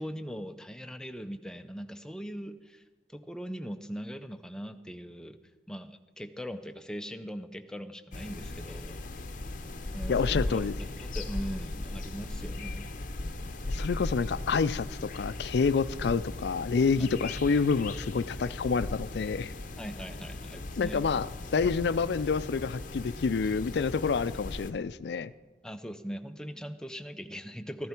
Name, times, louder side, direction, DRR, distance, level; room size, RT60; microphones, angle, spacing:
voice 1, 0.0-2.8 3.1-5.4 5.7-9.0 9.9-10.7 11.0-12.9 17.0-17.1 19.8-21.0 25.6-27.9, equal, 5° left, 8 dB, 0.5 m, -40 dB
sound 1, 8.1-24.7, left 2 dB, 45° left, 0.7 m, -38 dB
voice 2, 10.1-10.7 13.7-19.5 20.8-25.3, left 5 dB, 65° left, 15 dB, 0.4 m, -28 dB
13.5 x 11.5 x 4.4 m, 1.2 s
head